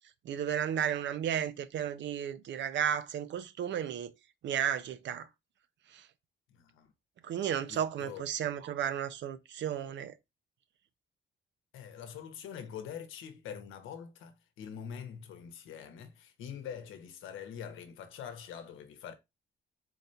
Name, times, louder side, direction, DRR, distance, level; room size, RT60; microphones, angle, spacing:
voice 1, 0.2-4.1 4.4-5.3 5.9-6.1 7.2-10.1, right 9 dB, 65° right, 0.6 m, -33 dB
voice 2, 6.5-6.9 7.7-8.2 11.7-19.1, left 8 dB, 85° left, 0.9 m, -44 dB
4.1 x 2.7 x 4.3 m
cardioid pair, 90°, 20 cm